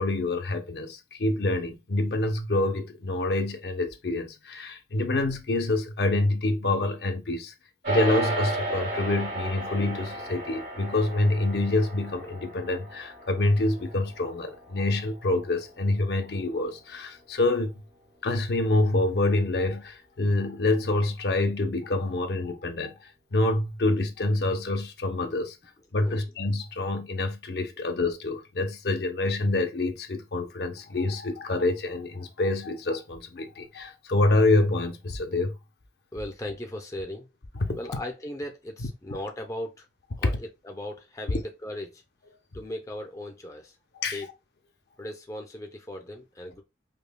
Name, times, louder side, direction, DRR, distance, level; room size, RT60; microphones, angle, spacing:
voice 1, 0.0-7.5 7.9-17.7 18.2-25.6 25.9-35.5 37.6-37.8 39.1-39.2 40.2-40.3 43.9-44.2, left 2 dB, 65° left, 0.6 m, -26 dB
sound 1, 7.8-17.4, right 2 dB, 75° right, 2.3 m, -35 dB
voice 2, 36.1-37.3 37.7-39.8 40.2-42.0 42.5-43.8 44.1-44.3 45.0-46.6, left 1 dB, 20° left, 0.5 m, -37 dB
5.1 x 2.2 x 2.2 m
head